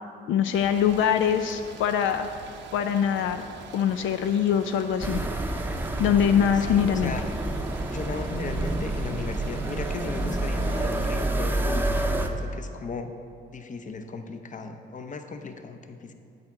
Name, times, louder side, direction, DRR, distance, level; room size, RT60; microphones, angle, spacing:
voice 1, 0.3-2.3 2.7-3.4 3.7-5.2 6.0-7.1, left 8 dB, 80° left, 8 dB, 0.4 m, -23 dB
sound 1, 0.5-11.3, right 5 dB, 65° right, 0.8 m, -45 dB
sound 2, 5.0-12.3, right 2 dB, 10° right, 0.7 m, -28 dB
voice 2, 6.7-7.3 7.9-13.1 13.5-16.1, left 4 dB, 40° left, 7 dB, 0.7 m, -36 dB
10.5 x 7.7 x 3.6 m, 2.5 s
cardioid pair, 90°, 20 cm